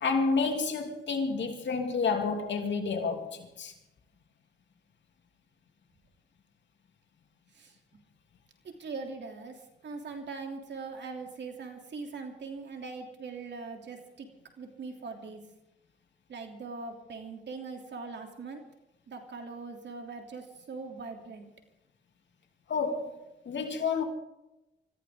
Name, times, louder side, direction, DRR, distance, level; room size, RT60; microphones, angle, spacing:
voice 1, 0.0-3.7 22.7-24.0, left 4 dB, 80° left, 3.0 m, -30 dB
voice 2, 8.6-14.3 14.6-15.4 16.3-18.6 19.1-21.5, right 4 dB, 75° right, 3.1 m, -41 dB
25.0 x 15.0 x 3.8 m
cardioid pair, 70°, 19 cm